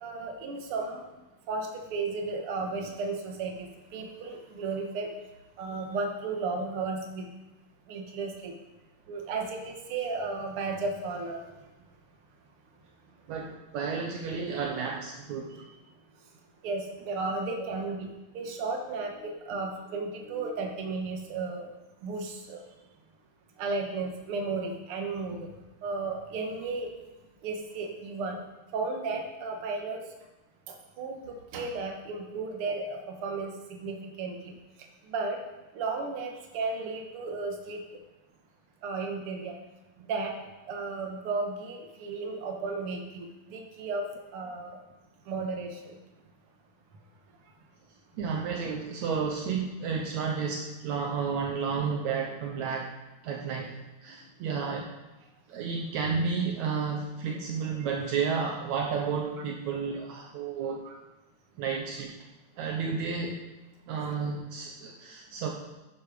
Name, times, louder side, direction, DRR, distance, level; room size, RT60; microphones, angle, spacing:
voice 1, 0.0-1.1 1.5-5.1 5.6-7.3 7.9-8.5 9.1-11.4 15.5-15.6 16.6-21.7 22.0-22.6 23.6-25.5 25.8-26.9 27.4-28.4 28.7-30.0 30.7-33.5 33.8-34.5 35.1-35.4 35.7-37.8 38.8-39.6 40.1-40.3 40.7-44.8 45.3-45.9 57.8-57.9 58.4-58.5 60.8-61.0, right 3 dB, 50° right, 2 dB, 2.1 m, -34 dB
voice 2, 13.3-15.5 48.2-52.9 53.2-54.9 55.5-60.8 61.6-62.2 62.6-63.4 63.9-65.5, right 5 dB, 70° right, 1 dB, 2.1 m, -31 dB
11.0 x 10.5 x 5.1 m, 1.0 s
omnidirectional pair, 3.5 m